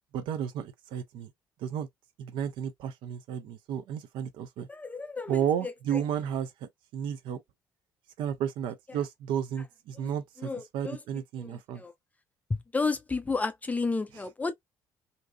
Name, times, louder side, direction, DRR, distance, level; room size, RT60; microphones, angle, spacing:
voice 1, 0.1-1.3 1.6-1.9 2.2-4.7 5.3-7.4 8.2-11.8, right 9 dB, 50° right, 0.5 m, -33 dB
voice 2, 4.7-5.4 5.9-6.0 10.0-10.1 10.4-11.0 11.4-11.9 12.5-14.5, left 4 dB, 15° left, 0.4 m, -32 dB
2.6 x 2.3 x 2.2 m
figure-of-eight pair, 55°, 10 cm